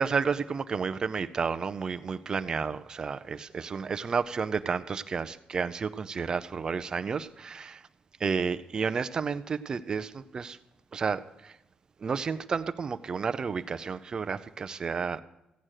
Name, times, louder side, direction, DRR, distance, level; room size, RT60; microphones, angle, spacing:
voice 1, 0.0-7.9 8.2-10.6 10.9-11.6 12.0-15.2, right 5 dB, 30° right, 12 dB, 0.5 m, -31 dB
16.0 x 8.9 x 6.4 m, 0.90 s
wide cardioid pair, 175°, 2 cm